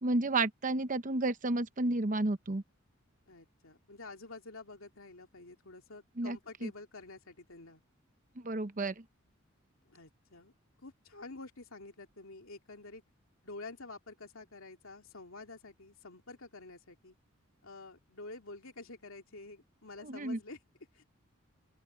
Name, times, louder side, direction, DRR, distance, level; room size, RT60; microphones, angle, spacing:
voice 1, 0.0-2.6 6.2-6.4 6.6-6.7 8.4-8.9 20.0-20.4, right 2 dB, 40° right, 0.9 m, -31 dB
voice 2, 3.3-7.8 9.9-10.5 10.8-13.0 13.4-17.1 17.6-20.6 20.9-21.0, left 3 dB, 80° left, 2.7 m, -49 dB
open air
head